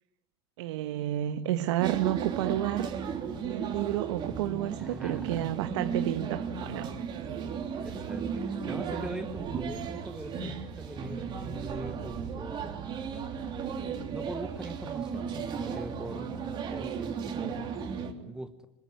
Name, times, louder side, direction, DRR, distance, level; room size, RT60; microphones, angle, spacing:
voice 1, 0.6-2.9 3.4-6.9 7.3-7.6, right 13 dB, 75° right, 9 dB, 1.3 m, -31 dB
sound 1, 1.8-18.1, right 6 dB, 30° right, 3.3 m, -35 dB
voice 2, 4.7-5.5 7.8-12.9 14.1-16.3 16.7-17.6 18.3-18.7, right 1 dB, 5° right, 8 dB, 1.3 m, -42 dB
26.0 x 21.5 x 9.5 m, 0.86 s
supercardioid pair, 150°, 15 cm